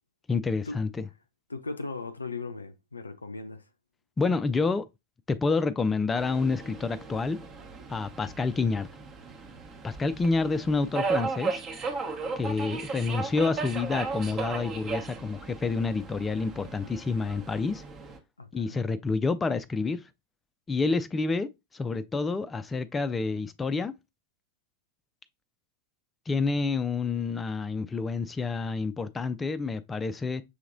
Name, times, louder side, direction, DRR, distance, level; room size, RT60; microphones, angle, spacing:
voice 1, 0.3-0.9 4.2-4.9 5.3-7.4 7.9-8.9 9.8-11.6 12.4-17.8 18.5-20.0 20.7-21.5 21.7-23.9 26.3-30.4, left 4 dB, 15° left, 0.3 m, -28 dB
voice 2, 1.5-3.7 18.4-18.9, left 3 dB, 80° left, 0.4 m, -38 dB
Subway metro underground, 6.2-18.2, right 4 dB, 30° right, 0.9 m, -36 dB
6.3 x 2.9 x 2.5 m
figure-of-eight pair, 90°, 0 cm